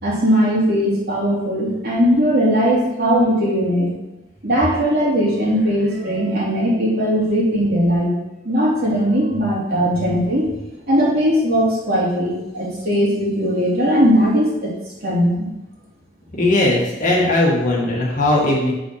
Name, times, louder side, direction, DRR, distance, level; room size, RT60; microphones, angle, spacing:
voice 1, 0.0-3.9 4.4-8.1 8.4-10.5 10.9-14.7 15.0-15.5, equal, 55° right, -6 dB, 3.0 m, -18 dB
voice 2, 16.3-18.7, left 1 dB, 45° left, -4 dB, 2.0 m, -18 dB
7.1 x 6.0 x 4.9 m, 0.98 s
head